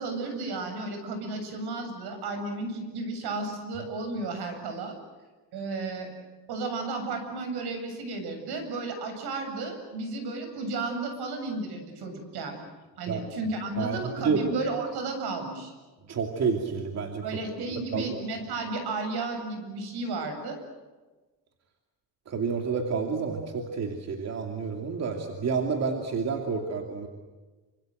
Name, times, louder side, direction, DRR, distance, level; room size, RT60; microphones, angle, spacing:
voice 1, 0.0-5.0 5.5-6.1 6.5-12.6 13.0-15.7 17.2-20.6, right 3 dB, 75° right, 6 dB, 8.0 m, -33 dB
voice 2, 13.8-14.4 16.1-17.2 17.9-18.1 22.3-27.1, right 5 dB, 40° right, 3 dB, 2.7 m, -29 dB
28.5 x 26.0 x 7.9 m, 1.2 s
cardioid pair, 160°, 39 cm